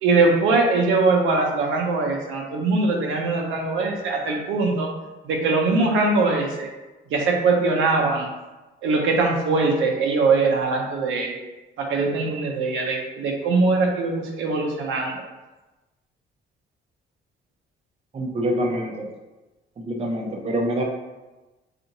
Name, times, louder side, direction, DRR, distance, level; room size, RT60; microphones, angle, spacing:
voice 1, 0.0-4.9 5.2-6.7 7.1-8.3 8.8-11.3 11.8-15.2, right 3 dB, 85° right, 1 dB, 0.5 m, -21 dB
voice 2, 18.1-19.1 19.9-20.8, right 1 dB, 30° right, 0 dB, 0.5 m, -25 dB
2.6 x 2.4 x 2.8 m, 1.1 s
cardioid pair, 90°, 20 cm